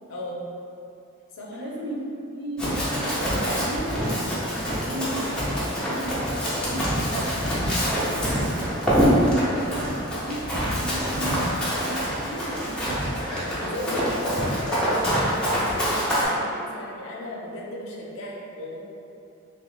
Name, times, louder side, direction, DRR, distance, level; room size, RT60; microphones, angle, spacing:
voice 1, 0.1-0.5 1.4-1.6 13.4-18.8, left 1 dB, 75° left, -3 dB, 0.5 m, -35 dB
voice 2, 1.5-3.9 4.5-8.3 9.0-13.0 13.6-14.3, right 1 dB, 55° right, -4 dB, 0.6 m, -35 dB
Run, 2.6-16.2, equal, 5° left, 0.6 m, -25 dB
2.9 x 2.8 x 3.2 m, 2.7 s
head